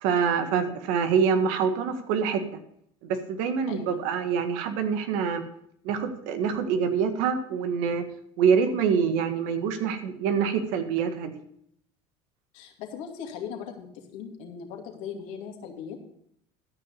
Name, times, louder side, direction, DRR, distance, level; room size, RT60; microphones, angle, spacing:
voice 1, 0.0-2.4 3.0-5.4 5.8-8.0 8.4-11.4, right 6 dB, 75° right, 8 dB, 1.7 m, -25 dB
voice 2, 12.5-16.0, left 7 dB, 70° left, 3 dB, 2.4 m, -39 dB
13.0 x 6.0 x 7.0 m, 0.70 s
supercardioid pair, 95°, 13 cm